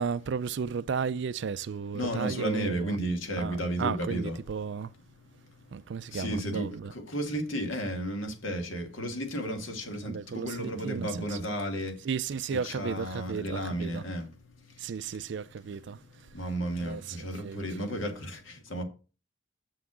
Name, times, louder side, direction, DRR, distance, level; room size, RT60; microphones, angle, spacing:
voice 1, 0.0-3.0 3.4-4.9 5.7-6.9 10.0-11.4 12.0-14.0 14.8-16.0 16.8-18.0, right 6 dB, 60° right, 0.4 m, -34 dB
voice 2, 1.9-4.4 5.2-5.6 6.1-12.1 12.5-15.1 15.9-18.8, equal, 75° left, 2.2 m, -34 dB
7.0 x 5.9 x 6.2 m
head